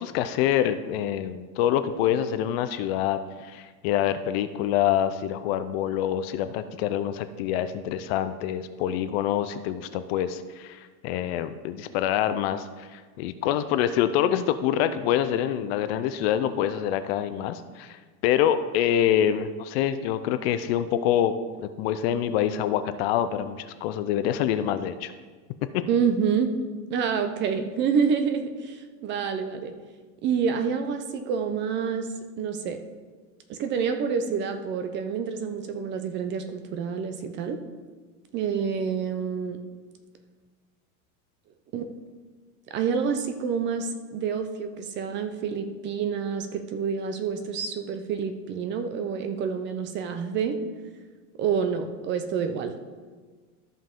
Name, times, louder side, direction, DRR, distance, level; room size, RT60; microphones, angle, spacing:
voice 1, 0.0-21.3 21.6-25.1 25.7-25.8, left 10 dB, 45° left, 11 dB, 0.5 m, -26 dB
voice 2, 25.9-26.5 26.9-29.7 30.2-32.1 32.4-32.8 33.5-37.6 38.3-39.6 41.7-41.9 42.7-50.6 51.4-52.7, right 6 dB, 25° right, 8 dB, 0.5 m, -28 dB
13.5 x 5.5 x 3.7 m, 1.4 s
supercardioid pair, 145°, 44 cm